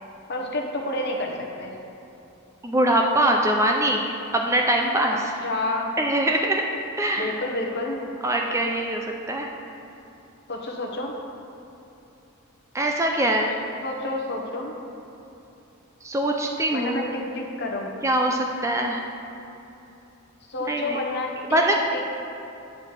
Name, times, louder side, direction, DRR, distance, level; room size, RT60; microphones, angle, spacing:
voice 1, 0.3-1.8 5.4-5.9 7.2-8.0 10.5-11.1 13.8-14.8 16.7-17.9 20.5-21.6 21.9-22.1, left 2 dB, 50° left, 0 dB, 1.0 m, -29 dB
voice 2, 2.6-5.2 6.0-6.6 7.0-7.4 8.2-9.5 12.7-13.5 16.0-17.1 18.0-19.0 20.7-21.0 21.5-21.8, right 1 dB, 15° right, 1 dB, 0.4 m, -23 dB
8.9 x 4.1 x 7.2 m, 2.9 s
head